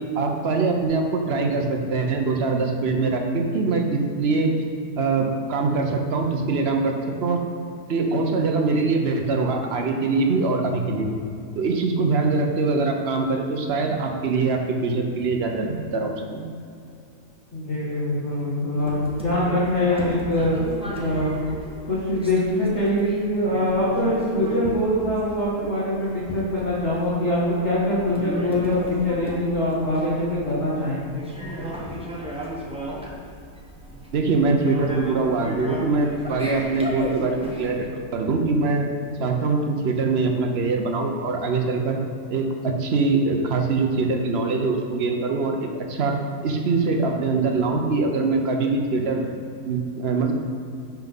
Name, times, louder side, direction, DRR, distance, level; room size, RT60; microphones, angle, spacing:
voice 1, 0.1-4.5 5.0-6.9 7.2-7.4 7.9-11.2 11.5-16.5 34.1-38.9 39.2-42.0 42.3-46.2 46.4-49.2 49.6-50.3, right 3 dB, 55° right, 3 dB, 0.7 m, -23 dB
voice 2, 17.5-20.6 21.0-21.4 21.9-31.2, left 1 dB, 45° left, -9 dB, 1.7 m, -23 dB
sound 1, 18.8-37.9, equal, 5° right, 0.6 m, -35 dB
5.9 x 5.7 x 5.3 m, 2.5 s
omnidirectional pair, 1.7 m